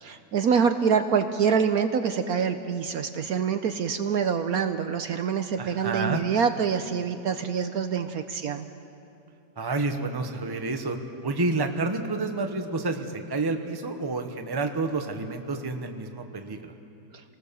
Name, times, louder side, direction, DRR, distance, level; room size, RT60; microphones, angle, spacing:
voice 1, 0.0-8.7, right 6 dB, 65° right, 8 dB, 1.2 m, -25 dB
voice 2, 5.6-6.2 9.6-11.0 11.2-16.7, right 3 dB, 15° right, 6 dB, 1.0 m, -29 dB
27.0 x 19.0 x 6.9 m, 2.8 s
omnidirectional pair, 1.8 m